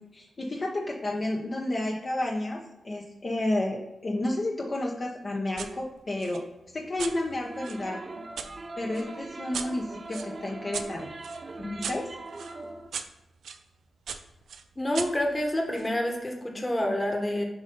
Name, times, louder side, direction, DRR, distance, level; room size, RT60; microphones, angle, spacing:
voice 1, 0.1-6.4 6.7-8.0 8.8-11.1 11.6-12.1, left 1 dB, 45° left, -1 dB, 0.9 m, -31 dB
sound 1, 5.6-5.7 6.2-8.5 8.9-13.6 14.1-15.9, right 6 dB, 85° right, 0.4 m, -40 dB
sound 2, 7.4-12.9, right 2 dB, 50° right, 0.7 m, -41 dB
voice 2, 14.8-17.4, left 1 dB, 25° left, 2 dB, 1.2 m, -28 dB
7.0 x 2.7 x 5.3 m, 0.97 s
cardioid pair, 60°, 0 cm